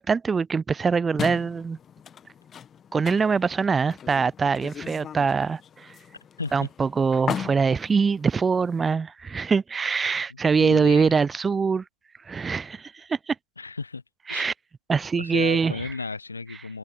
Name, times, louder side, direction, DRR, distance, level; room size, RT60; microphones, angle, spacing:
voice 1, 0.0-1.8 2.9-6.0 6.5-11.8 12.3-13.4 14.3-14.5 14.9-15.9, right 5 dB, 15° right, 0.4 m, -23 dB
sound 1, 1.2-8.9, left 8 dB, 20° left, 1.1 m, -38 dB
voice 2, 6.4-6.7 10.3-11.1 13.6-14.0 14.3-14.5 15.2-16.8, left 4 dB, 80° left, 0.8 m, -34 dB
figure-of-eight pair, 100°, 0 cm